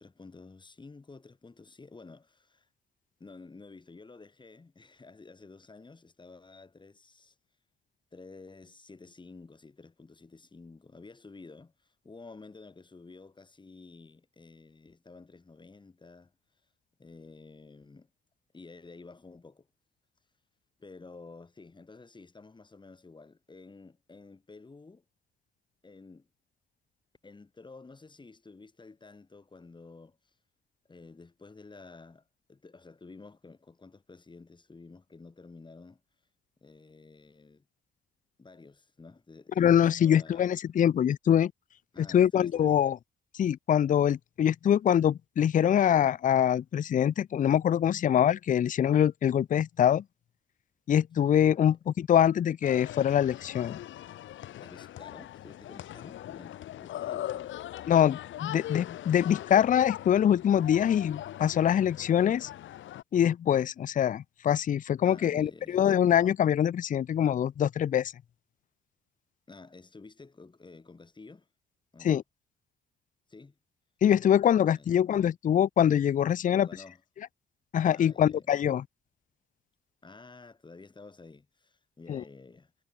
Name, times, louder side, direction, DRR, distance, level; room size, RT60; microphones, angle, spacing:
voice 1, 0.0-2.7 3.2-7.4 8.1-16.3 17.0-18.1 18.5-19.7 20.8-25.0 25.8-26.3 27.2-30.2 30.9-32.2 32.5-36.0 36.6-37.7 38.4-39.7 40.0-40.5 41.9-42.9 51.7-51.8 54.6-57.6 65.0-65.9 69.5-71.5 71.9-72.2 73.3-73.5 74.6-74.9 76.4-77.0 77.9-78.5 80.0-82.7, left 3 dB, 25° left, 2.7 m, -51 dB
voice 2, 39.6-41.5 42.0-43.0 43.4-50.0 50.9-53.8 57.9-62.5 63.1-68.1 72.0-72.2 74.0-76.7 77.7-78.8 82.1-82.2, left 9 dB, 40° left, 0.5 m, -24 dB
sound 1, 52.6-63.0, left 13 dB, 75° left, 1.3 m, -40 dB
cardioid pair, 90°, 20 cm